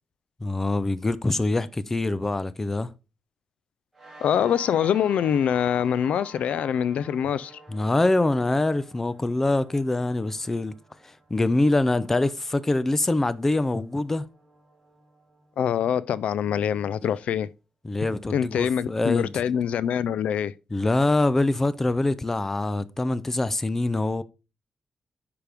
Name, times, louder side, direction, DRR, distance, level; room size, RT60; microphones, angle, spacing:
voice 1, 0.4-2.9 7.7-10.7 11.3-14.3 17.8-19.3 20.7-24.2, left 2 dB, 15° left, 0.5 m, -24 dB
sound 1, 3.9-16.7, right 2 dB, 5° right, 2.6 m, -50 dB
voice 2, 4.2-7.6 15.6-17.5 18.3-20.5, left 9 dB, 90° left, 0.3 m, -24 dB
9.1 x 5.2 x 3.4 m
wide cardioid pair, 160°, 2 cm